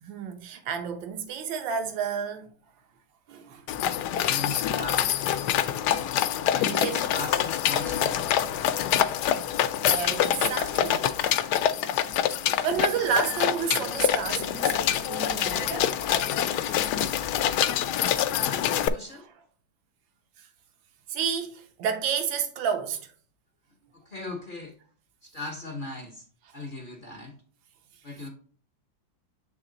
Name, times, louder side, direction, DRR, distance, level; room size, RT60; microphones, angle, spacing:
voice 1, 0.0-2.5 3.3-3.7 5.7-6.2 6.6-7.1 9.3-9.4 9.8-11.5 12.6-15.9 16.5-16.8 19.1-19.2 20.4-20.5 21.1-23.1, right 7 dB, 80° right, 1.6 m, -31 dB
sound 1, 3.7-18.9, left 10 dB, 75° left, 1.0 m, -26 dB
voice 2, 4.2-5.5 6.4-8.4 18.3-19.3 24.1-24.7 25.2-26.3 26.5-27.3 28.0-28.3, left 2 dB, 45° left, 0.7 m, -39 dB
7.6 x 3.2 x 3.8 m
omnidirectional pair, 2.0 m